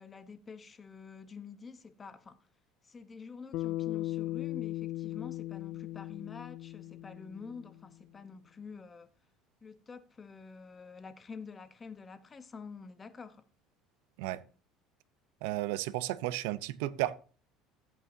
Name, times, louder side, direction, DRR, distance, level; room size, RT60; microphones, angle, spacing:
voice 1, 0.0-2.5 2.8-9.1 9.6-13.5, left 5 dB, 20° left, 0.9 m, -48 dB
Bass guitar, 3.5-8.0, left 16 dB, 65° left, 0.4 m, -38 dB
voice 2, 15.4-17.2, right 16 dB, 90° right, 0.6 m, -33 dB
14.0 x 8.3 x 2.7 m
cardioid pair, 135°, 0 cm